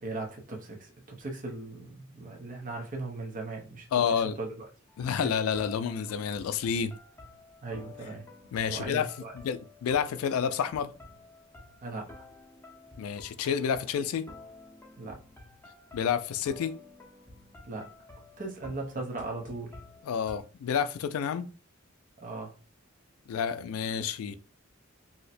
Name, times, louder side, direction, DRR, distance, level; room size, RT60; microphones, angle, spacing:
voice 1, 0.0-3.9 4.4-4.5 5.2-5.4 7.6-8.2 8.7-9.3 11.8-12.2 15.0-15.2 17.6-17.9 18.4-19.8 22.2-22.5, right 3 dB, 40° right, 0.7 m, -38 dB
voice 2, 3.9-4.4 5.0-6.9 8.5-9.1 9.3-10.9 13.0-14.3 15.9-16.8 20.0-21.5 23.3-24.4, left 7 dB, 85° left, 0.3 m, -29 dB
sound 1, 4.9-20.4, left 2 dB, 10° left, 0.8 m, -51 dB
2.7 x 2.1 x 4.0 m
head